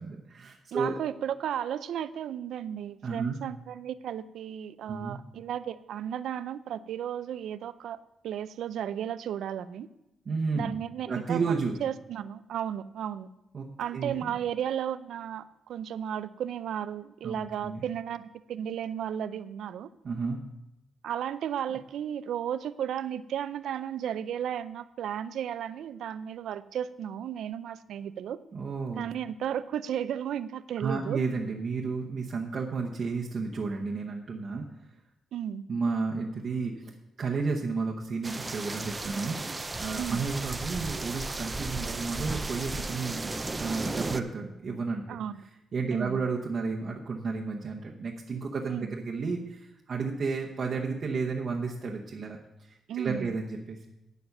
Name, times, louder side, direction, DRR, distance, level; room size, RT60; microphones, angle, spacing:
voice 1, 0.0-1.0 3.0-3.3 4.9-5.2 10.2-10.7 11.1-11.8 13.5-13.7 13.9-14.3 17.2-17.4 17.6-17.8 20.0-20.4 28.5-29.0 30.8-34.7 35.7-43.3 43.6-45.0 45.7-53.9, right 4 dB, 40° right, -1 dB, 0.9 m, -32 dB
voice 2, 0.7-9.9 10.5-11.4 11.8-13.3 13.8-19.9 21.0-28.4 29.0-31.2 35.3-35.6 40.0-40.2 45.1-45.4 45.9-46.2 48.7-48.9 52.9-53.3, right 9 dB, 75° right, 14 dB, 0.4 m, -34 dB
sound 1, 38.2-44.2, right 2 dB, 15° right, 0.4 m, -35 dB
9.3 x 7.1 x 6.5 m, 0.89 s
wide cardioid pair, 180°, 0 cm